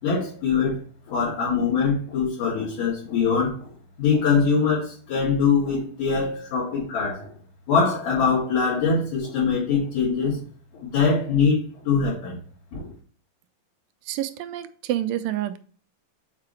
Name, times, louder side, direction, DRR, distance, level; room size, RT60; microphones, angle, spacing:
voice 1, 0.0-0.8 1.1-3.7 4.0-7.3 7.7-10.4 10.7-12.4 12.7-12.9, left 5 dB, 65° left, -8 dB, 4.0 m, -23 dB
voice 2, 14.1-15.6, right 13 dB, 85° right, 10 dB, 2.3 m, -28 dB
7.5 x 4.8 x 3.1 m, 0.42 s
omnidirectional pair, 4.0 m